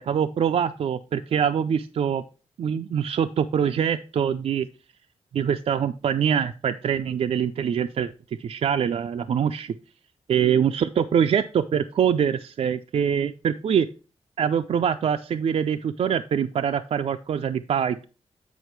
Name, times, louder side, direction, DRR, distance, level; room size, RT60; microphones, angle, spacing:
voice 1, 0.0-2.2 2.6-4.7 5.3-8.1 8.4-9.8 10.3-13.9 14.4-18.0, right 8 dB, 65° right, 7 dB, 0.4 m, -24 dB
8.2 x 5.0 x 4.5 m, 0.36 s
wide cardioid pair, 130°, 12 cm